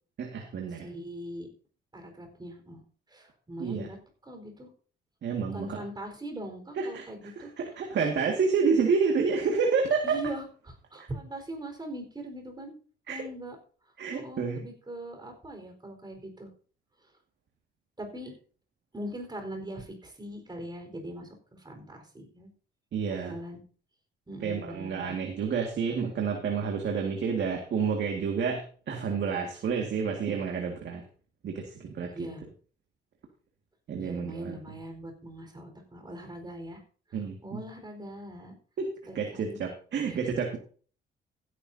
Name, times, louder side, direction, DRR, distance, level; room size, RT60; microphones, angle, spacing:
voice 1, 0.2-0.9 3.6-3.9 5.2-5.8 6.8-7.0 7.4-10.2 11.0-11.1 13.1-13.2 14.0-14.6 22.9-23.3 24.4-31.0 31.4-32.1 33.9-34.6 37.1-37.6 38.8-38.9 39.2-40.6, right 5 dB, 60° right, 2 dB, 2.1 m, -29 dB
voice 2, 0.7-1.5 1.9-2.8 3.1-4.0 4.2-4.7 5.5-7.5 10.0-12.7 13.1-13.6 14.1-16.5 18.0-18.3 18.9-22.5 23.1-23.6 24.3-25.2 32.1-32.4 34.0-36.8 37.1-38.5 39.1-39.6 40.1-40.2, right 1 dB, 20° right, 4 dB, 4.5 m, -41 dB
15.5 x 10.5 x 2.8 m, 0.42 s
cardioid pair, 90°, 20 cm